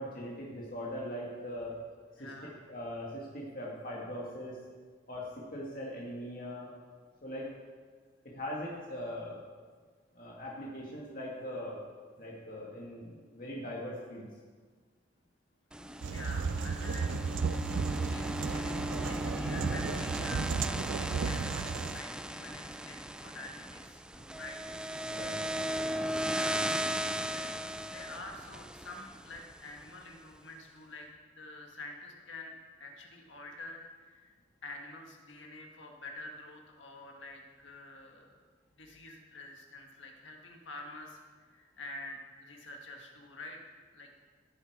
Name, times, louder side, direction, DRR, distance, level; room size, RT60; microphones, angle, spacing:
voice 1, 0.0-1.7 2.2-2.3 2.7-4.6 5.1-6.7 7.2-7.5 8.2-9.4 10.1-11.8 12.2-14.3 25.1-25.6, equal, 50° left, -4 dB, 1.9 m, -40 dB
voice 2, 2.2-2.6 16.1-17.1 18.0-20.5 20.9-24.8 26.3-26.9 27.2-27.5 27.8-34.3 34.6-38.4 38.7-41.2 41.5-44.2, left 2 dB, 85° left, 1 dB, 1.6 m, -47 dB
sound 1, 15.7-29.9, equal, 5° right, 0.3 m, -37 dB
sound 2, 16.0-22.0, right 5 dB, 85° right, 0.4 m, -34 dB
16.0 x 8.0 x 4.7 m, 1.5 s
head